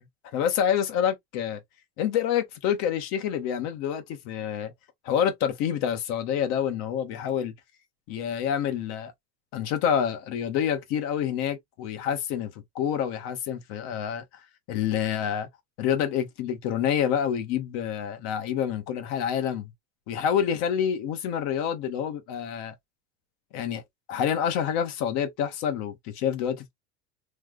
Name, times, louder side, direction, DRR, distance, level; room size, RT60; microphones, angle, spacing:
voice 1, 0.3-1.6 2.0-4.7 5.0-7.5 8.1-9.1 9.5-14.2 14.7-15.5 15.8-19.7 20.1-22.7 23.5-23.8 24.1-26.7, left 9 dB, 55° left, 0.9 m, -27 dB
3.2 x 2.0 x 3.6 m
cardioid pair, 165°, 33 cm